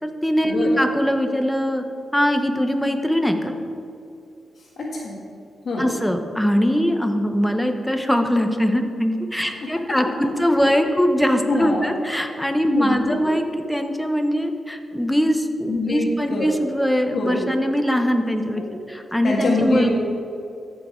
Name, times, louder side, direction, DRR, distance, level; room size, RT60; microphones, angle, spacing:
voice 1, 0.0-1.8 2.1-3.5 5.8-18.6 18.9-19.9, equal, 5° left, 6 dB, 0.9 m, -21 dB
voice 2, 4.8-5.2 5.6-5.9 9.4-9.7 10.6-10.8 11.5-11.8 12.6-13.0 13.2-13.3 15.7-16.5 17.1-17.4 18.5-18.7 19.2-19.9, left 2 dB, 60° left, -3 dB, 1.6 m, -24 dB
14.5 x 5.6 x 4.4 m, 2.6 s
cardioid pair, 85°, 0 cm